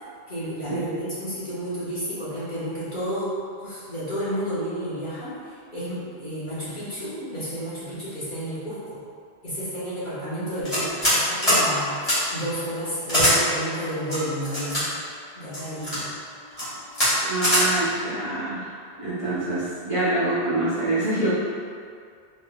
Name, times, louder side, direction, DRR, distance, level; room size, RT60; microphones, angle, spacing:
voice 1, 0.3-3.3 3.6-9.0 9.4-14.9 15.4-16.1, equal, 50° left, -12 dB, 1.3 m, -31 dB
sound 1, 10.7-11.2 11.4-11.6 12.0-12.2 13.1-13.3 14.1-14.8 15.5-16.0 16.5-16.7 16.9-17.1 17.4-17.6, equal, 35° left, 1.7 m, -21 dB
voice 2, 17.3-18.7 19.0-21.3, right 2 dB, 35° right, -12 dB, 0.8 m, -25 dB
3.8 x 3.7 x 2.2 m, 2.2 s
omnidirectional pair, 1.1 m